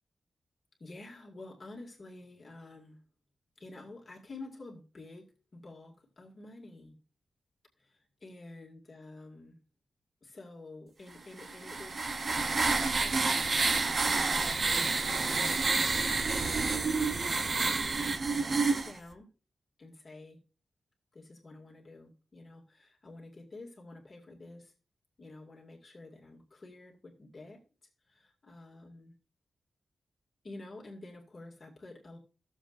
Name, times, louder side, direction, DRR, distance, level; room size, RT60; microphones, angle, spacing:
voice 1, 0.8-3.0 3.6-6.9 7.8-9.6 10.2-13.5 14.4-17.9 18.3-19.3 19.8-20.4 21.1-24.7 25.2-27.6 28.1-29.1 30.4-32.2, left 2 dB, 35° left, -2 dB, 2.3 m, -50 dB
sound 1, 11.4-18.9, right 4 dB, 45° right, 0.8 m, -29 dB
15.0 x 7.3 x 2.6 m, 0.34 s
wide cardioid pair, 140°, 0 cm